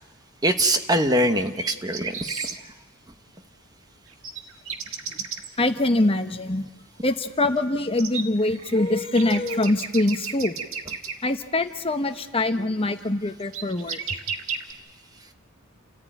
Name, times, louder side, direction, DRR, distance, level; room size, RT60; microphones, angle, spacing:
voice 1, 0.4-2.6, right 1 dB, 20° right, 7 dB, 1.2 m, -23 dB
sound 1, 1.4-2.5 4.1-5.5 7.6-7.7 8.0-11.1 13.0-13.1 13.4-14.7, right 7 dB, 80° right, 1.6 m, -33 dB
voice 2, 5.6-6.7 7.0-10.6 11.2-14.0, left 2 dB, 25° left, 8 dB, 1.0 m, -23 dB
29.5 x 14.5 x 9.2 m, 1.3 s
head